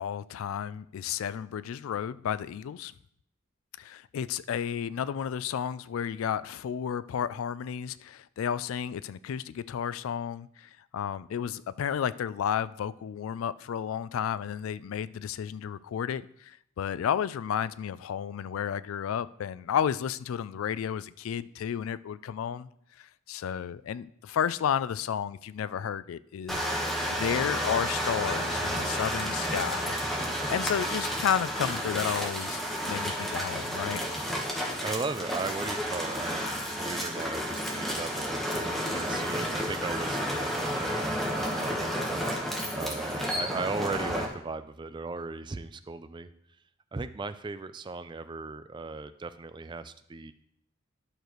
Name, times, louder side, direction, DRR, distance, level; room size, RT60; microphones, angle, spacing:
voice 1, 0.0-2.9 3.8-22.7 23.0-26.7 27.1-29.9 30.5-32.6 32.9-34.0, left 8 dB, 90° left, 0.3 m, -32 dB
sound 1, 26.5-44.3, equal, ahead, 1.2 m, -31 dB
voice 2, 34.8-42.2 42.7-46.3 46.9-50.3, right 3 dB, 20° right, 0.3 m, -37 dB
11.5 x 6.6 x 3.1 m
head